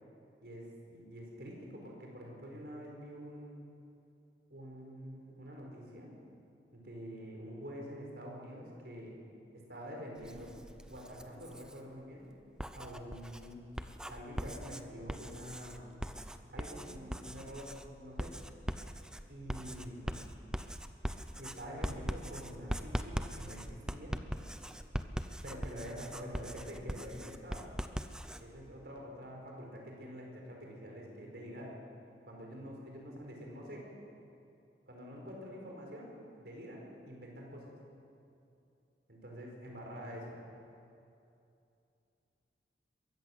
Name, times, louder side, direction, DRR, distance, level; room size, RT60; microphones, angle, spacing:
voice 1, 0.4-3.6 4.5-6.1 6.7-9.2 9.5-10.6 10.9-12.3 12.7-13.6 14.1-16.0 16.5-18.3 19.3-20.2 21.4-24.2 25.4-27.7 28.4-31.8 32.2-33.8 34.9-37.7 39.1-40.4, equal, 65° right, -1 dB, 5.0 m, -46 dB
Writing, 10.2-11.8 12.4-28.4, equal, 5° right, 0.6 m, -41 dB
22.5 x 14.5 x 8.1 m, 2.7 s
head